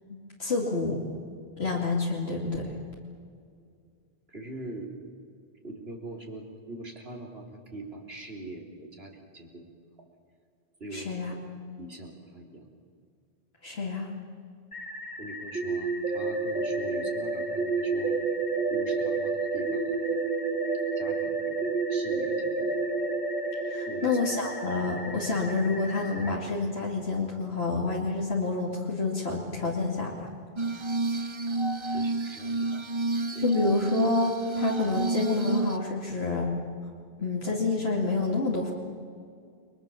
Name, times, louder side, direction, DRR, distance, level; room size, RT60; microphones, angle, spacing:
voice 1, 0.1-1.0 1.6-2.8 10.9-11.3 13.6-14.1 23.6-30.3 33.4-36.5 37.2-38.7, left 3 dB, 75° left, -3 dB, 2.8 m, -28 dB
voice 2, 4.3-4.9 5.6-9.7 10.8-11.1 11.8-12.7 15.2-18.2 18.7-19.9 21.0-22.7 23.9-24.2 31.9-32.9 33.2-33.4, right 2 dB, 70° right, 0 dB, 3.8 m, -42 dB
sound 1, 14.7-26.3, left 2 dB, 60° left, 2.3 m, -42 dB
sound 2, 15.5-27.3, right 4 dB, 10° right, 2.6 m, -30 dB
Glass, 30.6-35.8, right 2 dB, 30° right, 0.8 m, -30 dB
30.0 x 22.5 x 7.1 m, 2.3 s
omnidirectional pair, 1.1 m